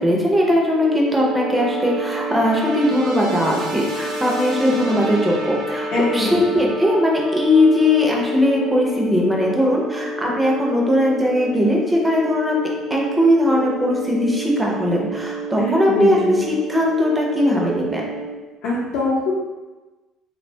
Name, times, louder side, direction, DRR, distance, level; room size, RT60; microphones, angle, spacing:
voice 1, 0.0-12.6 12.9-18.0, left 1 dB, 10° right, -2 dB, 0.5 m, -19 dB
sound 1, 0.7-18.3, right 2 dB, 65° right, 0.4 m, -29 dB
voice 2, 5.9-6.6 15.6-16.4 18.6-19.3, left 2 dB, 70° left, -8 dB, 0.6 m, -23 dB
2.8 x 2.1 x 2.6 m, 1.2 s
cardioid pair, 120°, 0 cm